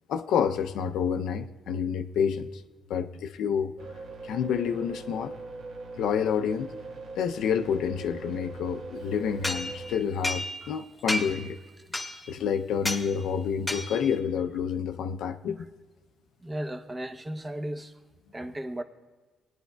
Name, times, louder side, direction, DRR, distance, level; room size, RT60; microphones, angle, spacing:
voice 1, 0.1-2.6 2.9-3.7 4.2-5.3 6.0-6.7 7.2-11.6 12.3-15.7, left 7 dB, 80° left, 0.5 m, -28 dB
sound 1, 3.8-10.0, right 3 dB, 65° right, 1.2 m, -41 dB
sound 2, 9.4-10.8 11.1-11.5 11.9-12.4 12.8-13.1 13.7-14.2, left 1 dB, 15° left, 1.1 m, -32 dB
voice 2, 16.4-17.9 18.3-18.8, right 1 dB, 20° right, 0.7 m, -35 dB
18.5 x 10.5 x 2.2 m
cardioid pair, 90°, 0 cm